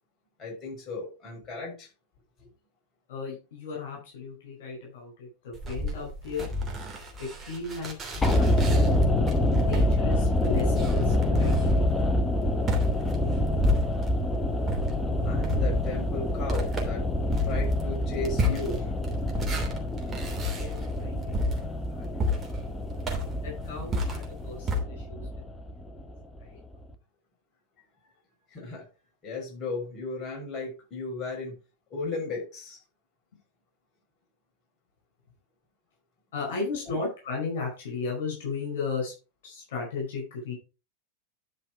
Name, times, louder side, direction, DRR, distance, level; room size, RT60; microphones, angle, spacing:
voice 1, 0.4-1.9 2.4-2.5 15.2-17.0 17.4-18.9 19.5-19.6 28.5-28.9 29.2-31.5 31.9-32.8 36.9-37.0, left 3 dB, 25° left, -1 dB, 6.8 m, -35 dB
voice 2, 3.1-6.5 7.2-9.0 9.6-11.9 20.4-22.0 23.4-25.3 26.4-26.6 36.3-39.1 39.4-40.5, left 4 dB, 55° left, -2 dB, 5.0 m, -35 dB
sound 1, 5.5-14.3 14.6-24.8, left 1 dB, 20° right, 3.0 m, -32 dB
sound 2, 8.2-26.4 26.7-26.8, left 1 dB, 10° left, 1.3 m, -26 dB
11.0 x 5.6 x 4.7 m, 0.31 s
figure-of-eight pair, 90°, 0 cm